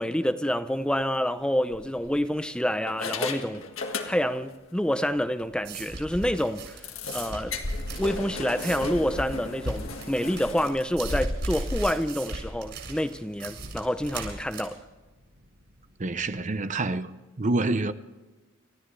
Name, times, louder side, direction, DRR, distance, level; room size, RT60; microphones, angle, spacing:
voice 1, 0.0-3.6 4.1-6.8 7.1-7.5 8.0-14.8, equal, 5° left, 0.6 m, -27 dB
sound 1, 0.8-1.0 1.7-2.4 2.9-4.5 4.8-5.0 5.4-5.5 5.8-5.9 6.8-11.8, left 2 dB, 85° left, 1.7 m, -34 dB
sound 2, 5.2-16.5, right 2 dB, 60° right, 7.5 m, -39 dB
voice 2, 16.0-17.1 17.4-17.9, right 2 dB, 35° right, 0.7 m, -27 dB
29.5 x 14.5 x 3.3 m
head